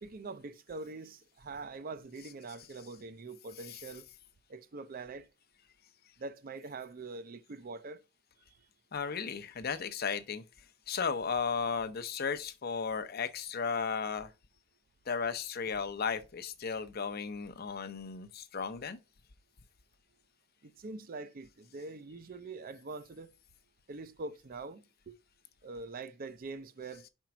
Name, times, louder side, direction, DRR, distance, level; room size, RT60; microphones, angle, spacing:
voice 1, 0.0-4.1 4.5-5.3 6.2-8.0 20.6-23.3 23.9-25.1 25.6-27.1, right 3 dB, 45° right, 0.5 m, -44 dB
voice 2, 8.9-10.4 10.9-14.3 15.1-19.0, left 6 dB, 50° left, 0.6 m, -35 dB
5.0 x 4.5 x 5.8 m
head